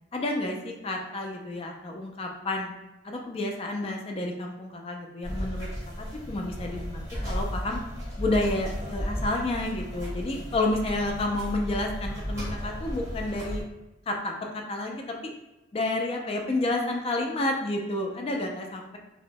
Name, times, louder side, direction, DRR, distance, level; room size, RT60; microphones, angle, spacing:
voice 1, 0.1-2.7 3.0-5.7 6.0-7.8 8.2-13.6 14.1-15.3 15.7-19.0, left 2 dB, 30° left, 2 dB, 0.3 m, -30 dB
sound 1, 5.2-13.6, equal, 15° right, 0.8 m, -34 dB
2.9 x 2.1 x 2.6 m, 0.99 s
head